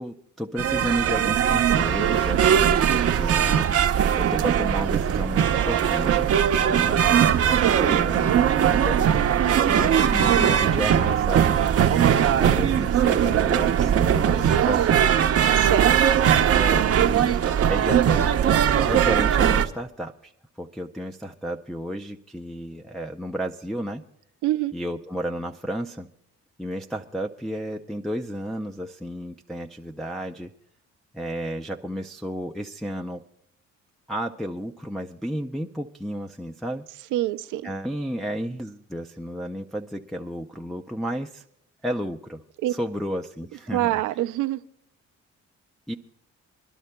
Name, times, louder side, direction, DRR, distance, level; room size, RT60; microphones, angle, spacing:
voice 1, 0.0-6.3 6.6-9.1 9.6-15.0 16.5-17.4 17.7-18.4 18.8-20.3 20.6-24.0 24.7-26.1 26.6-30.5 31.1-33.2 34.1-36.8 37.6-41.4 41.8-42.4 42.7-44.0 45.9-46.0, equal, ahead, 1 dB, 0.4 m, -32 dB
sound 1, 0.6-19.7, right 9 dB, 50° right, 0.7 m, -20 dB
voice 2, 9.4-9.8 15.6-16.0 24.4-24.7 37.1-37.7 42.6-42.7 43.7-44.6, right 14 dB, 90° right, 11 dB, 0.5 m, -25 dB
26.0 x 11.5 x 2.2 m, 0.74 s
cardioid pair, 90°, 30 cm